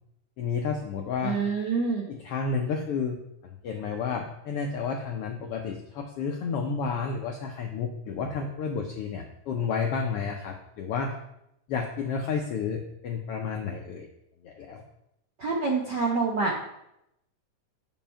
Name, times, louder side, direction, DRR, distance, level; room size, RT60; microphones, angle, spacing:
voice 1, 0.4-1.4 2.1-3.2 3.4-11.1 11.7-14.1 14.4-14.8, left 5 dB, 90° left, 2 dB, 1.3 m, -31 dB
voice 2, 1.2-2.0 15.4-16.5, right 4 dB, 85° right, -2 dB, 0.9 m, -26 dB
7.5 x 5.0 x 5.6 m, 0.81 s
omnidirectional pair, 3.5 m